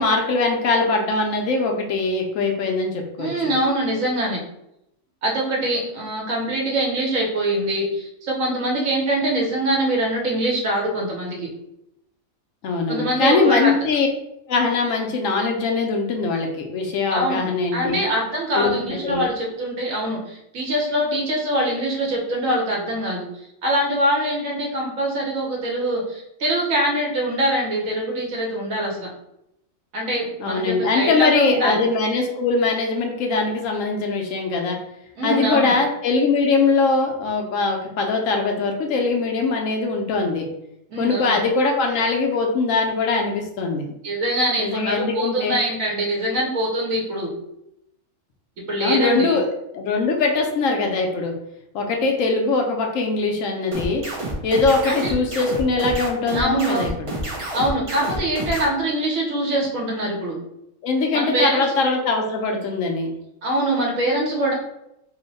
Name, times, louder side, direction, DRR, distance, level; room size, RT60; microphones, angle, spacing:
voice 1, 0.0-3.6 12.6-14.1 14.5-18.0 18.5-19.3 30.4-34.8 35.2-40.5 41.0-43.9 44.6-45.6 48.8-51.3 51.7-54.0 54.4-57.1 60.8-63.1, left 3 dB, 75° left, 2 dB, 1.0 m, -22 dB
voice 2, 3.2-4.4 5.2-11.5 12.9-13.7 17.1-29.1 29.9-31.8 35.2-35.7 40.9-41.4 44.0-47.3 48.7-49.4 54.9-55.1 56.3-56.8 57.5-60.4 61.1-61.6 63.4-64.5, right 1 dB, 80° right, -1 dB, 1.3 m, -23 dB
sound 1, 53.7-58.7, right 1 dB, 45° right, 0.4 m, -29 dB
3.1 x 2.1 x 3.9 m, 0.82 s
omnidirectional pair, 1.4 m